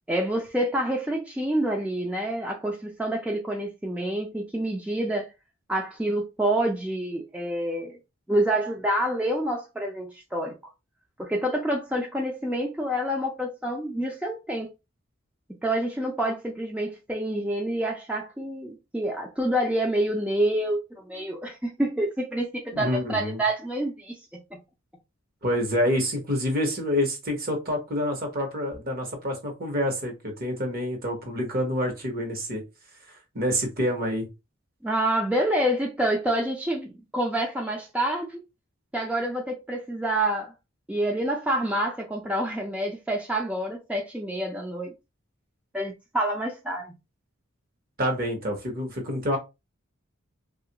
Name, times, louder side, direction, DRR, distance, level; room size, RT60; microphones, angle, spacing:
voice 1, 0.1-5.3 5.7-8.0 8.3-10.6 11.2-14.7 15.6-24.2 34.8-38.4 38.9-40.5 40.9-44.9 45.7-46.9, right 1 dB, 5° right, 0.4 m, -27 dB
voice 2, 22.7-23.4 25.4-32.6 33.3-34.3 48.0-49.4, equal, 45° right, 1.0 m, -27 dB
2.9 x 2.4 x 2.8 m
head